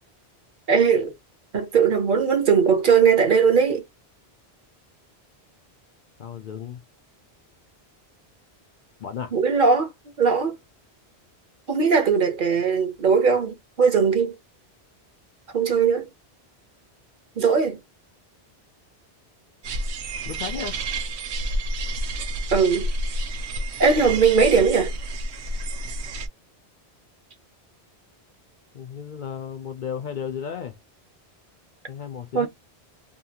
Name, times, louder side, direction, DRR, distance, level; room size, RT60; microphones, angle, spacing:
voice 1, 0.7-1.1 1.5-3.8 9.3-9.9 10.2-10.5 11.7-14.3 15.5-16.1 17.4-17.8 22.5-22.9 23.8-24.9 32.3-32.5, right 6 dB, 55° right, 0.8 m, -19 dB
voice 2, 6.2-6.8 9.0-9.3 20.3-20.8 28.7-30.8 31.9-32.5, left 7 dB, 55° left, 0.6 m, -34 dB
sound 1, 19.6-26.3, right 1 dB, 80° right, 0.9 m, -29 dB
2.7 x 2.4 x 2.8 m
omnidirectional pair, 1.1 m